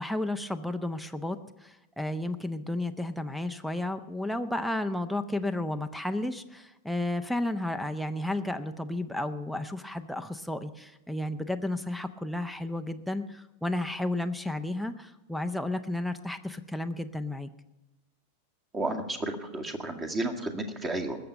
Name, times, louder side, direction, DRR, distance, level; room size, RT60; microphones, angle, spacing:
voice 1, 0.0-17.5, left 1 dB, ahead, 5 dB, 0.7 m, -32 dB
voice 2, 18.7-21.2, right 2 dB, 20° right, 5 dB, 1.9 m, -32 dB
20.0 x 6.9 x 8.6 m, 1.0 s
figure-of-eight pair, 90°, 0 cm